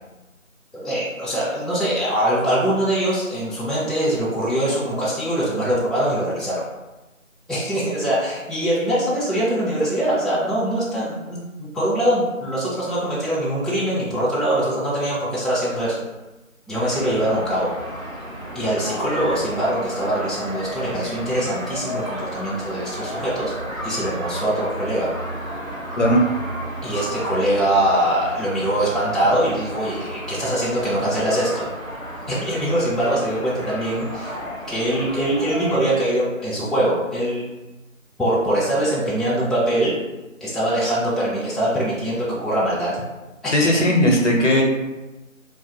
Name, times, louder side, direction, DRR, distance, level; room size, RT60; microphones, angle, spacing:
voice 1, 0.7-6.6 7.5-16.0 16.7-17.7 18.5-23.5 23.8-25.1 26.8-31.7 32.3-34.4 34.7-37.4 38.2-39.9 40.4-43.0 43.4-43.8, right 1 dB, ahead, -9 dB, 0.4 m, -23 dB
sound 1, 16.7-35.8, right 1 dB, 85° right, 1.1 m, -33 dB
voice 2, 26.0-26.3 43.5-44.6, equal, 60° left, 0 dB, 0.6 m, -17 dB
2.4 x 2.3 x 2.7 m, 1.1 s
figure-of-eight pair, 175°, 41 cm